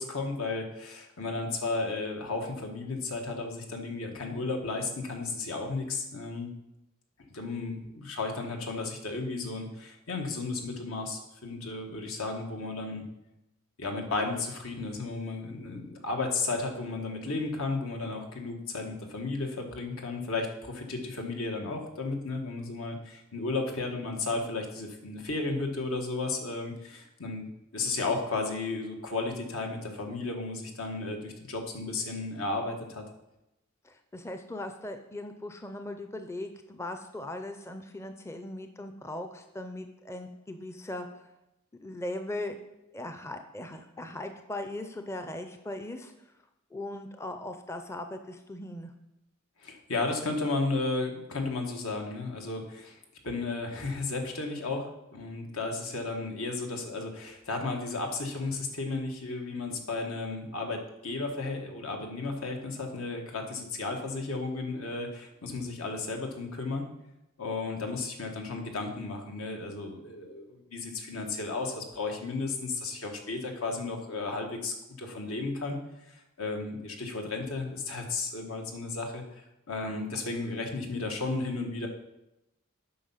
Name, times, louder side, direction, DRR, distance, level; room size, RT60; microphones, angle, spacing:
voice 1, 0.0-6.5 7.3-13.0 13.8-33.0 49.6-53.0 53.2-66.9 67.4-75.8 76.1-81.9, left 3 dB, 80° left, 3 dB, 1.5 m, -34 dB
voice 2, 33.8-41.1 41.8-42.6 42.9-46.1 46.7-48.9, left 1 dB, 15° left, 7 dB, 0.5 m, -39 dB
8.6 x 5.5 x 5.6 m, 0.91 s
head